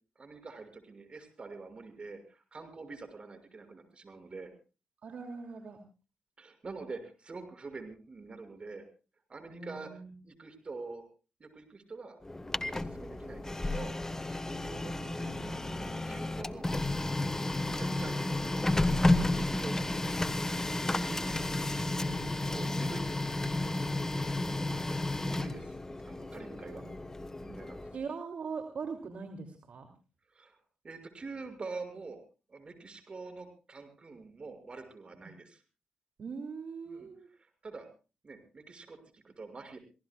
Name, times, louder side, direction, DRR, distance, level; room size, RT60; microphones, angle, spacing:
voice 1, 0.1-4.5 6.4-8.9 9.3-9.9 10.2-11.0 11.4-12.2 12.6-14.0 14.2-14.4 15.6-16.7 17.5-20.1 22.5-23.9 24.4-25.8 26.0-26.8 27.4-27.8 30.3-30.6 30.8-32.2 32.5-35.6 36.9-37.1 37.4-37.9 38.2-39.8, right 3 dB, 40° right, 7 dB, 6.5 m, -46 dB
voice 2, 5.0-5.8 9.5-10.1 14.4-16.0 20.8-22.5 26.6-27.0 27.9-29.9 35.1-35.3 36.2-37.3, right 5 dB, 60° right, 4 dB, 2.8 m, -43 dB
Printer, 12.2-28.0, left 2 dB, 20° left, 1.3 m, -32 dB
27.5 x 18.0 x 2.4 m, 0.34 s
supercardioid pair, 60°, 3 cm